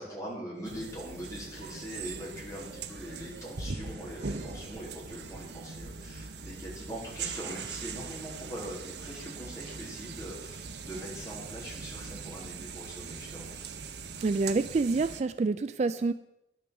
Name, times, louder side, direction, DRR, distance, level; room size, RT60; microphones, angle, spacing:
voice 1, 0.0-13.7, equal, 15° left, -5 dB, 3.9 m, -42 dB
sound 1, 0.6-15.2, right 5 dB, 70° right, 0.8 m, -41 dB
voice 2, 14.2-16.1, right 3 dB, 40° right, 12 dB, 0.3 m, -27 dB
10.5 x 6.8 x 7.0 m, 0.87 s
head